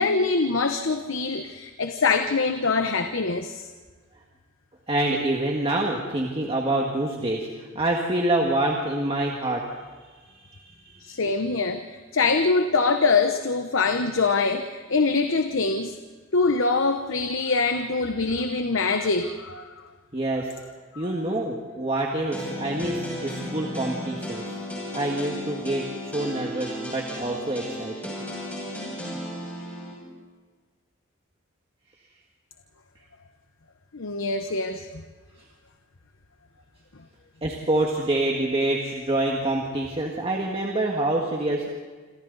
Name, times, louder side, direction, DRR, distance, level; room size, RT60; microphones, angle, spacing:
voice 1, 0.0-3.7 11.0-16.0 16.3-19.7 20.9-21.1 33.9-35.0, left 4 dB, 65° left, 6 dB, 1.0 m, -24 dB
voice 2, 4.9-7.5 7.8-9.6 10.3-11.2 20.1-20.5 21.0-24.5 24.9-25.8 26.1-28.1 37.4-41.7, right 1 dB, 25° right, -1 dB, 1.8 m, -26 dB
sound 1, 22.3-29.9, left 1 dB, 5° left, 7.1 m, -34 dB
27.0 x 27.0 x 4.1 m, 1.4 s
head